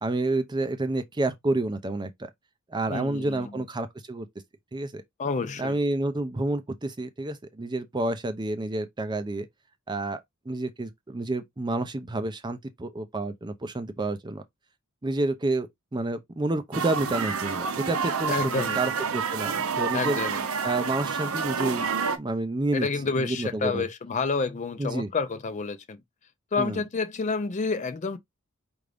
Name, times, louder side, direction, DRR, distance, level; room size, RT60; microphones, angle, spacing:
voice 1, 0.0-2.3 2.7-4.3 4.7-5.0 5.6-9.5 9.9-10.2 10.5-14.4 15.0-20.2 20.6-21.9 22.2-22.9 23.2-23.8 24.8-25.1 26.6-26.8, right 2 dB, 20° right, 0.5 m, -29 dB
voice 2, 2.9-3.5 5.2-5.7 18.3-18.8 19.9-20.4 22.7-26.0 26.5-28.2, left 4 dB, 35° left, 0.4 m, -29 dB
sound 1, 16.7-22.2, right 6 dB, 75° right, 0.6 m, -29 dB
4.8 x 2.6 x 3.3 m
head